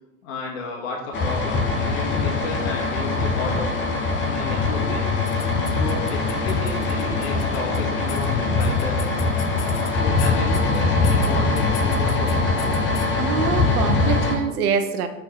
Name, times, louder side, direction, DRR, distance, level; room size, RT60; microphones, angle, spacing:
voice 1, 0.2-3.7 4.2-5.1 5.7-9.0 9.9-12.6, left 3 dB, 50° left, -2 dB, 2.0 m, -32 dB
sound 1, 1.1-14.3, left 3 dB, 25° left, 1.2 m, -22 dB
sound 2, 5.2-7.8 8.1-8.3 8.6-9.9 10.2-11.3 11.6-13.1, left 11 dB, 70° left, 0.7 m, -38 dB
voice 2, 13.2-15.1, right 7 dB, 75° right, 9 dB, 0.9 m, -24 dB
6.1 x 4.5 x 3.9 m, 1.1 s
hypercardioid pair, 120°, 45 cm